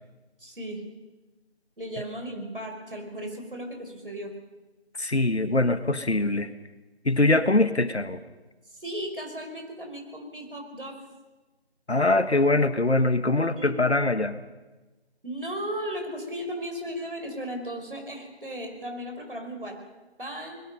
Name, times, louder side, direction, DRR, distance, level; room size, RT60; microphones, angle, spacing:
voice 1, 0.4-0.8 1.8-4.3 8.7-11.0 13.6-13.7 15.2-19.8 20.2-20.6, equal, 55° right, 3 dB, 5.0 m, -36 dB
voice 2, 5.0-6.5 7.0-8.2 11.9-14.4, left 2 dB, 85° left, 11 dB, 1.5 m, -23 dB
23.0 x 20.5 x 5.4 m, 1.2 s
figure-of-eight pair, 170°, 32 cm